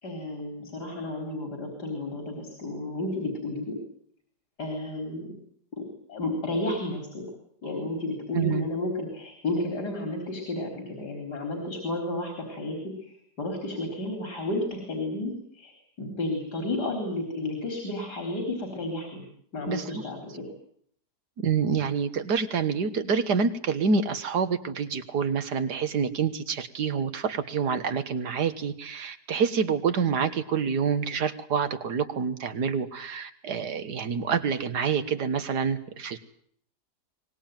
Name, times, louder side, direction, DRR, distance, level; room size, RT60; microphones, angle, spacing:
voice 1, 0.0-3.8 4.6-5.3 5.7-7.2 7.6-19.2 19.5-20.5, left 2 dB, 85° left, 4 dB, 4.7 m, -32 dB
voice 2, 8.3-8.7 19.7-19.9 21.4-36.2, right 6 dB, 80° right, 11 dB, 2.0 m, -27 dB
24.0 x 19.5 x 9.2 m, 0.64 s
omnidirectional pair, 1.7 m